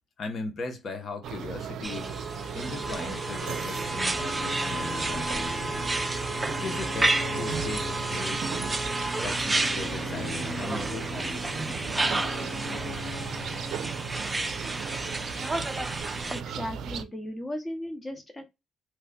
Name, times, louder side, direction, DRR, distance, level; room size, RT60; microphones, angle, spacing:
voice 1, 0.2-5.8 6.5-8.8 9.2-11.9 12.4-12.7, left 3 dB, 50° left, 0.8 m, -39 dB
sound 1, 1.2-17.0, right 7 dB, 75° right, 0.4 m, -36 dB
sound 2, 1.8-16.4, right 2 dB, 15° right, 0.5 m, -31 dB
sound 3, 3.7-15.0, left 2 dB, 35° left, 1.4 m, -41 dB
voice 2, 16.3-18.4, left 1 dB, 20° left, 1.1 m, -36 dB
3.0 x 2.2 x 3.7 m
cardioid pair, 90°, 0 cm